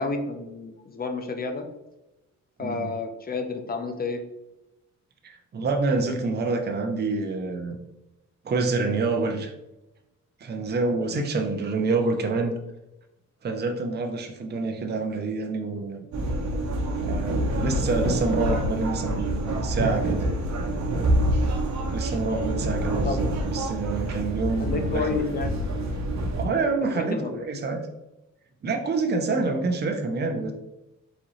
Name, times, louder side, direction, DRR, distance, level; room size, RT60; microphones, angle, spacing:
voice 1, 0.0-1.7 2.6-4.2 23.0-23.2 24.6-25.7 26.8-27.4, left 4 dB, 30° left, 5 dB, 0.7 m, -30 dB
voice 2, 2.6-2.9 5.2-7.8 8.4-9.5 10.4-12.5 13.4-16.1 17.0-20.3 21.9-25.2 26.4-27.9 28.6-30.5, right 3 dB, 35° right, 4 dB, 0.7 m, -27 dB
sound 1, 16.1-26.4, right 1 dB, 60° right, 1.0 m, -26 dB
4.1 x 3.6 x 3.1 m, 0.95 s
cardioid pair, 105°, 31 cm